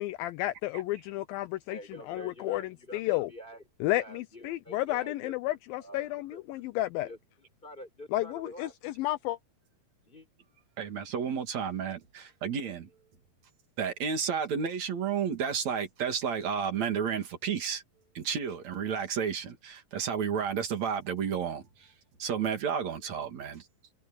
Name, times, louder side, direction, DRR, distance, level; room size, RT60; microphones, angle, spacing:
voice 1, 0.0-3.3 3.8-7.1 8.1-9.4, left 16 dB, 80° left, 2.2 m, -32 dB
voice 2, 1.7-5.3 5.8-6.4 7.0-8.7 10.1-10.3, equal, 10° left, 5.8 m, -47 dB
voice 3, 10.8-12.9 13.8-17.8 18.1-21.9 22.2-23.7, right 7 dB, 50° right, 3.3 m, -32 dB
omnidirectional pair, 4.5 m